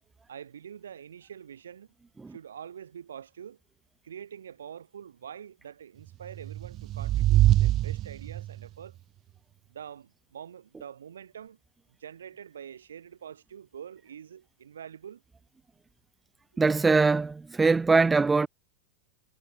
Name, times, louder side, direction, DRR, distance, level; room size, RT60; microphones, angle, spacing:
voice 1, 0.3-1.9 2.3-3.6 4.0-9.0 9.7-11.6 12.0-15.2, right 8 dB, 65° right, 7.6 m, -45 dB
sound 1, 6.3-8.7, right 14 dB, 35° right, 1.3 m, -24 dB
voice 2, 16.6-18.5, right 4 dB, 10° right, 1.5 m, -22 dB
figure-of-eight pair, 90°, 0 cm